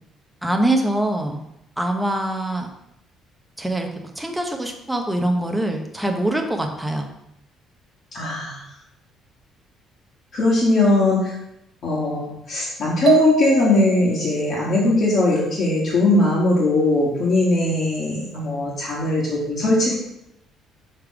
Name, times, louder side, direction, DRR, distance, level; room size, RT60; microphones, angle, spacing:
voice 1, 0.4-1.4 1.8-2.7 3.6-3.9 4.2-7.1, right 1 dB, 5° right, 3 dB, 0.7 m, -23 dB
voice 2, 8.1-8.6 10.3-11.3 11.8-19.9, left 2 dB, 40° left, -7 dB, 1.7 m, -20 dB
sound 1, 13.1-14.2, right 8 dB, 40° right, 1.4 m, -22 dB
6.5 x 3.5 x 4.8 m, 0.81 s
cardioid pair, 165°, 0 cm